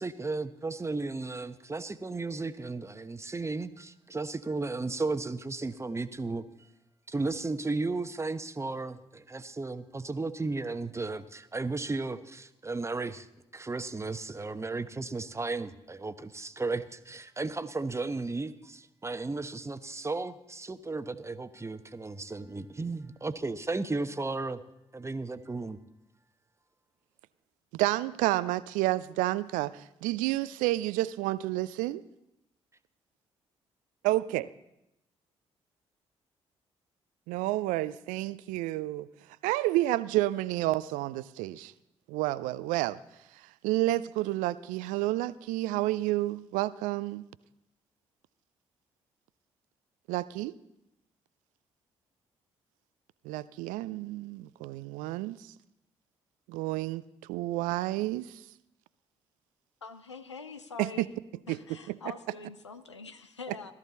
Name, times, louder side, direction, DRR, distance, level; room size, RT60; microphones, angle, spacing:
voice 1, 0.0-6.4 7.1-13.3 13.5-24.6 24.9-25.8, right 3 dB, 20° right, 1.0 m, -34 dB
voice 2, 27.7-32.0 34.0-34.5 37.3-39.1 39.4-41.7 42.1-43.0 43.6-47.2 50.1-50.5 53.2-55.5 56.5-57.0 57.3-58.4 60.8-61.1 61.5-61.6 61.9-62.0, right 17 dB, 65° right, 0.5 m, -30 dB
voice 3, 59.8-61.1 61.5-63.7, left 4 dB, 90° left, 0.6 m, -44 dB
17.0 x 13.0 x 4.1 m
figure-of-eight pair, 40°, 14 cm